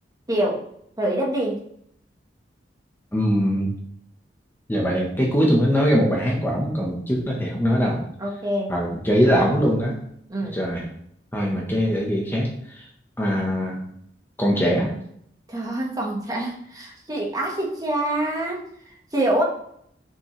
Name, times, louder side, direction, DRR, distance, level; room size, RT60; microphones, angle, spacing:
voice 1, 0.3-0.6 1.0-1.6 8.2-8.7 10.3-10.6 15.5-19.4, right 1 dB, 20° right, -2 dB, 1.4 m, -26 dB
voice 2, 3.1-3.7 4.7-8.0 8.7-10.0 10.5-10.9 11.3-12.8 13.2-13.8 14.4-14.9, equal, 10° left, -2 dB, 1.1 m, -22 dB
6.3 x 5.9 x 3.2 m, 0.69 s
head